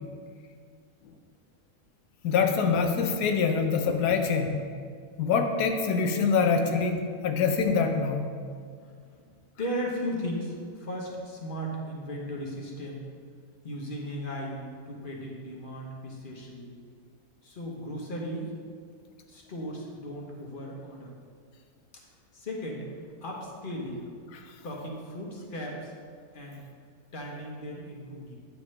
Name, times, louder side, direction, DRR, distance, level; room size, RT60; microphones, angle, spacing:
voice 1, 2.2-4.5 5.2-8.3 24.3-24.5, left 5 dB, 90° left, 5 dB, 1.2 m, -25 dB
voice 2, 9.3-13.0 13.6-16.7 17.4-18.5 19.3-21.1 22.3-22.9 23.2-24.0 24.6-25.9 26.3-26.6 27.1-28.4, equal, 40° left, -1 dB, 1.1 m, -36 dB
8.8 x 5.8 x 3.2 m, 2.1 s
omnidirectional pair, 1.6 m